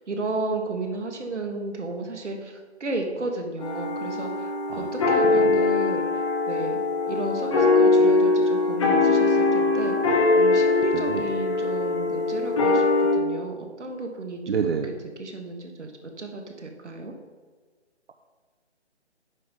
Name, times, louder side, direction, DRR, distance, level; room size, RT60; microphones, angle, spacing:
voice 1, 0.1-2.5 2.8-6.0 6.5-6.8 7.1-10.0 10.3-12.9 13.1-14.9 15.2-15.9 16.2-17.1, right 2 dB, 80° right, 3 dB, 1.6 m, -33 dB
sound 1, 3.6-13.1, left 3 dB, 25° left, 1.2 m, -22 dB
voice 2, 14.5-15.0, right 6 dB, 60° right, 5 dB, 0.6 m, -27 dB
9.2 x 3.7 x 5.6 m, 1.4 s
hypercardioid pair, 160°, 35 cm